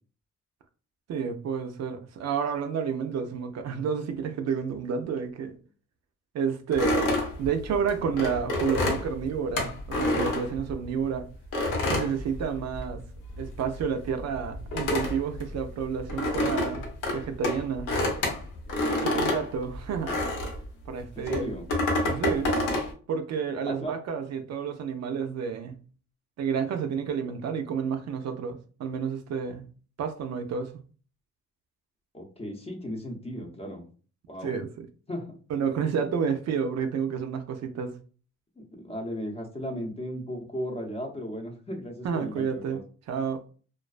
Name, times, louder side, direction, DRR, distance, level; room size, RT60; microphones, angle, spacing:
voice 1, 1.1-5.6 6.3-11.2 11.9-13.0 13.4-16.8 17.1-17.9 19.0-20.1 20.9-21.5 22.0-22.5 23.1-25.8 26.4-29.7 30.0-30.7 34.4-34.9 35.5-37.9 42.0-42.8 43.1-43.4, right 6 dB, 60° right, 0.5 m, -30 dB
sound 1, 6.7-11.0 11.5-13.0 13.3-20.7 21.2-22.9, left 1 dB, 85° left, 0.9 m, -28 dB
voice 2, 21.2-21.6 23.7-23.9 32.1-33.9 34.3-34.6 35.1-35.4 38.6-42.8, equal, 20° left, 0.7 m, -35 dB
2.3 x 2.2 x 2.4 m
cardioid pair, 90°, 30 cm